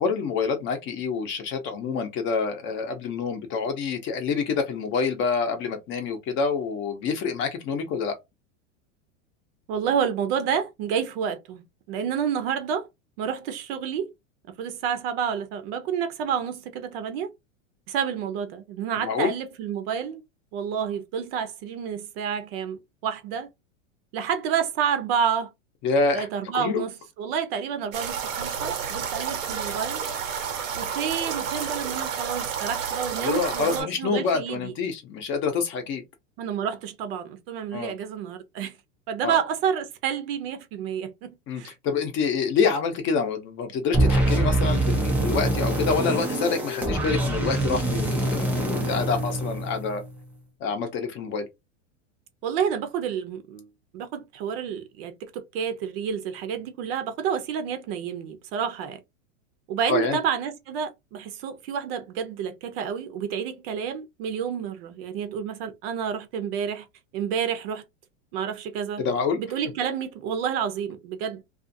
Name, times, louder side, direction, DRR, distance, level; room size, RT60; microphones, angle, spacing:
voice 1, 0.0-8.2 19.0-19.3 25.8-26.3 26.5-26.8 33.2-36.0 37.7-37.9 39.2-39.4 41.5-50.0 50.6-51.5 59.9-60.2 69.0-69.4, left 5 dB, 30° left, 0.7 m, -27 dB
voice 2, 9.7-12.9 13.2-14.1 14.5-17.3 17.9-20.2 20.5-23.5 24.1-25.5 26.1-30.0 30.8-34.7 36.4-38.8 39.1-41.7 52.4-53.7 53.9-59.0 59.7-66.9 67.1-67.8 68.3-69.1 69.4-71.4, right 7 dB, 50° right, 0.7 m, -29 dB
sound 1, 27.9-33.8, right 7 dB, 90° right, 1.1 m, -30 dB
sound 2, 43.9-50.1, right 1 dB, 5° right, 0.3 m, -24 dB
2.5 x 2.4 x 2.6 m
supercardioid pair, 140°, 38 cm